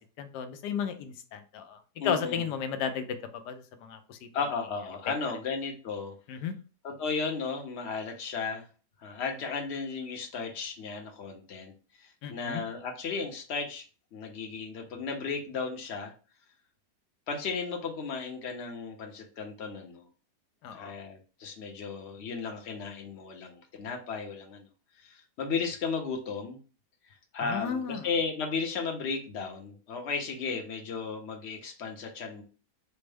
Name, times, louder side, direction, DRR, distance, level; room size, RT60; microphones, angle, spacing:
voice 1, 0.0-4.3 6.3-6.5 12.2-12.6 20.6-20.9 27.4-28.1, left 7 dB, 85° left, 8 dB, 1.2 m, -34 dB
voice 2, 2.0-2.5 4.3-6.1 6.8-8.6 9.0-13.8 14.1-16.1 17.3-20.1 20.7-24.7 25.0-26.6 27.1-32.4, left 5 dB, 55° left, 3 dB, 0.8 m, -35 dB
4.3 x 2.0 x 3.3 m, 0.36 s
omnidirectional pair, 1.7 m